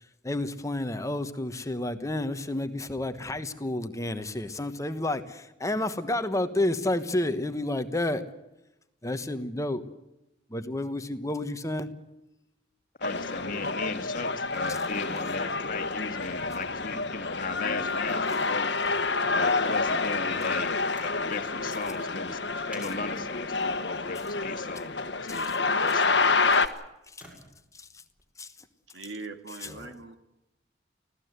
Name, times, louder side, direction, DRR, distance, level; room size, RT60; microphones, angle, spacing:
voice 1, 0.2-8.2 9.0-9.8 10.5-11.9 18.4-18.5 28.4-28.5 29.8-29.9, left 1 dB, 15° left, 10 dB, 1.2 m, -30 dB
sound 1, 13.0-26.7, left 3 dB, 65° left, 1.3 m, -28 dB
voice 2, 13.0-18.8 19.3-20.8 21.0-25.0 25.3-26.4, left 4 dB, 50° left, 7 dB, 1.7 m, -37 dB
sound 2, 19.5-28.2 29.2-29.3, left 1 dB, 5° right, 6.8 m, -56 dB
voice 3, 28.9-30.2, right 3 dB, 75° right, 7 dB, 2.1 m, -41 dB
25.0 x 16.5 x 8.1 m, 0.91 s
head